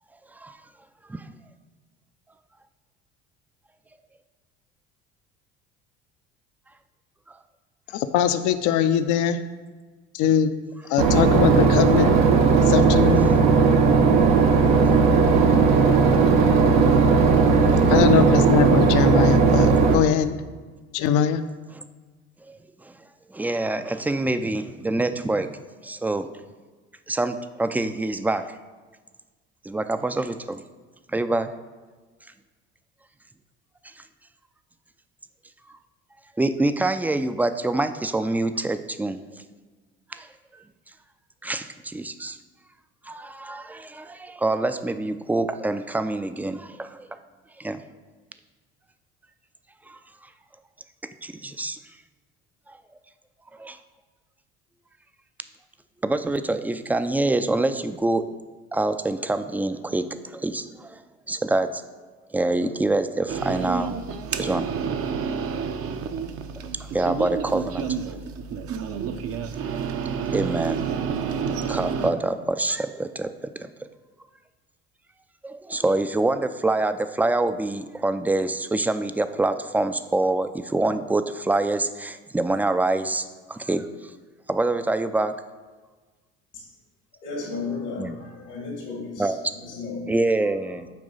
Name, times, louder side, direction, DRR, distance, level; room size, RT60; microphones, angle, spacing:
voice 1, 7.9-9.4 10.1-10.5 10.9-12.2 12.6-13.2 17.9-20.4 20.9-21.4, left 9 dB, 60° left, 10 dB, 0.6 m, -21 dB
Boat Water vehicle / Engine, 11.0-19.9, right 5 dB, 70° right, 0.9 m, -17 dB
voice 2, 15.9-16.3 17.6-17.8 21.7-21.8 22.4-22.9 23.3-25.6 25.8-26.3 27.1-28.6 29.6-30.6 31.1-31.5 33.8-34.0 36.4-39.4 40.1-40.3 40.5-40.6 41.4-42.4 43.1-47.2 47.6-47.8 49.9-50.0 51.2-51.8 52.7-52.8 53.6-53.8 56.0-58.2 58.7-61.0 61.3-61.8 62.3-64.0 64.4-64.7 66.9-67.9 69.6-69.7 70.3-71.3 71.7-73.7 75.4-84.1 84.5-85.3 88.0-88.2 89.2-89.4 90.1-90.9, right 2 dB, 5° right, 10 dB, 0.4 m, -26 dB
sound 1, 63.3-72.1, right 6 dB, 45° right, 0.7 m, -29 dB
voice 3, 87.2-90.2, left 4 dB, 85° left, -2 dB, 2.1 m, -34 dB
8.9 x 3.0 x 5.4 m, 1.3 s
hypercardioid pair, 65°, 34 cm